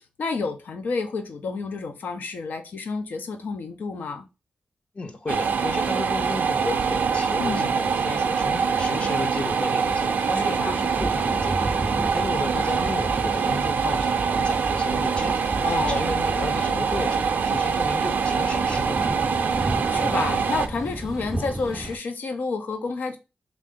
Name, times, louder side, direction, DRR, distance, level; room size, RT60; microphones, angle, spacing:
voice 1, 0.2-4.3 7.4-7.7 10.3-10.8 15.6-16.1 19.9-23.2, left 4 dB, 85° left, 0.6 m, -30 dB
voice 2, 4.9-19.3, left 3 dB, 40° left, 0.6 m, -34 dB
sound 1, 5.3-20.7, right 6 dB, 80° right, 0.4 m, -24 dB
sound 2, 9.2-22.0, right 1 dB, 15° right, 0.3 m, -34 dB
3.5 x 2.5 x 3.6 m
wide cardioid pair, 115°, 3 cm